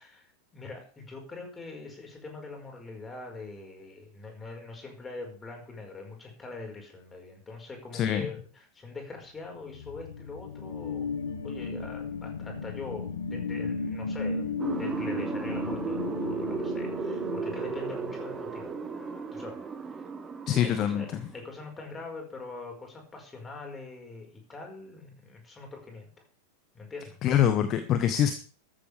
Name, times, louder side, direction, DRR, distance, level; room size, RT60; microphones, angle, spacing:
voice 1, 0.0-11.1 11.4-18.7 19.3-19.6 20.6-26.2 26.7-27.2, left 3 dB, 15° left, 2 dB, 5.1 m, -43 dB
voice 2, 7.9-8.3 20.5-21.0 27.2-28.3, left 10 dB, 35° left, 10 dB, 1.2 m, -24 dB
sound 1, 9.4-18.7, left 4 dB, 70° left, 1.2 m, -35 dB
sound 2, 14.6-21.4, right 5 dB, 15° right, 1.3 m, -34 dB
14.0 x 13.5 x 3.5 m, 0.40 s
figure-of-eight pair, 90°, 0 cm